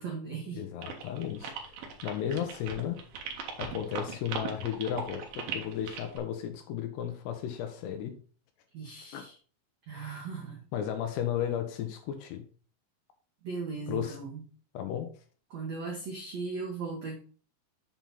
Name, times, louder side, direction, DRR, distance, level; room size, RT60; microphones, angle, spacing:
voice 1, 0.0-0.6 8.7-9.3 9.9-10.6 13.4-14.4 15.5-17.2, right 4 dB, 85° right, -1 dB, 1.5 m, -37 dB
voice 2, 0.5-3.0 3.6-8.2 9.1-9.2 9.9-10.2 10.7-12.5 13.9-14.2 14.7-15.1, left 9 dB, 75° left, 7 dB, 2.7 m, -34 dB
sound 1, 0.8-6.2, right 6 dB, 65° right, 2.5 m, -39 dB
7.6 x 4.4 x 5.4 m, 0.41 s
omnidirectional pair, 5.4 m